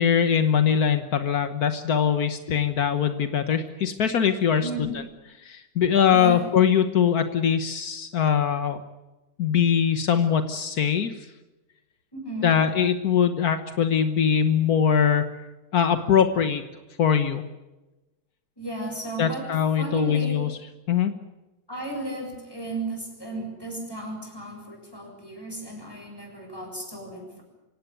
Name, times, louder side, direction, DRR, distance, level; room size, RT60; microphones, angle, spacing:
voice 1, 0.0-4.7 5.4-8.8 9.4-11.1 12.4-15.3 15.7-16.6 17.0-17.4 19.2-20.5 20.9-21.1, left 8 dB, 75° left, 9 dB, 1.7 m, -22 dB
voice 2, 4.6-5.0 6.1-6.5 12.1-12.6 18.6-19.5 19.8-20.4 21.7-27.4, right 2 dB, 15° left, 2 dB, 7.4 m, -34 dB
25.5 x 17.5 x 9.4 m, 1.1 s
omnidirectional pair, 1.6 m